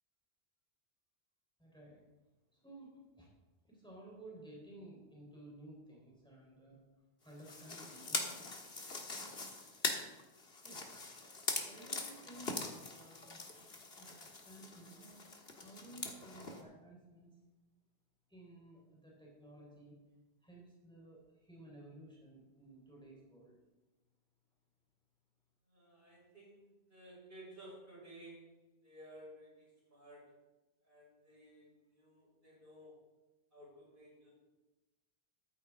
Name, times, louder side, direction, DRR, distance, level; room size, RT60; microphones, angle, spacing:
voice 1, 1.6-2.0 2.5-3.3 3.6-6.8 7.2-8.7 10.5-13.4 14.0-15.2 15.6-17.4 18.3-20.0 20.4-23.6, right 1 dB, 5° left, -3 dB, 4.0 m, -55 dB
sound 1, 7.4-16.6, left 3 dB, 70° left, 1.9 m, -42 dB
voice 2, 25.7-30.4 30.8-33.0 33.5-34.3, right 1 dB, 55° right, -5 dB, 6.2 m, -56 dB
14.0 x 13.5 x 3.7 m, 1.1 s
omnidirectional pair, 1.1 m